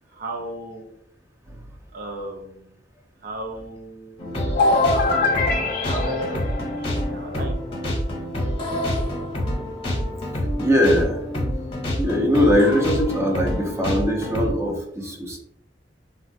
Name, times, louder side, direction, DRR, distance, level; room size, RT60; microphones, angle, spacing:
voice 1, 0.1-0.9 1.9-2.8 3.2-4.3 4.8-6.4 6.8-7.6, right 1 dB, 55° right, 1 dB, 0.5 m, -35 dB
sound 1, 4.2-14.5, left 1 dB, 30° left, 0.8 m, -27 dB
sound 2, 4.5-7.4, left 3 dB, 50° left, 0.4 m, -23 dB
voice 2, 10.6-11.3 11.9-15.4, equal, 15° right, 0 dB, 0.6 m, -21 dB
3.9 x 2.2 x 2.6 m, 0.71 s
head